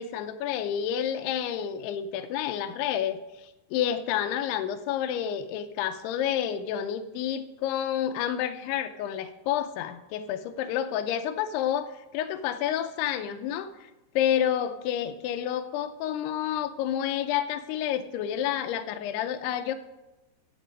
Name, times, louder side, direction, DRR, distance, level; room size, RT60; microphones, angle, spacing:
voice 1, 0.0-13.9 14.2-19.7, left 10 dB, 80° left, 9 dB, 2.5 m, -29 dB
13.0 x 7.4 x 5.3 m, 1.0 s
omnidirectional pair, 4.9 m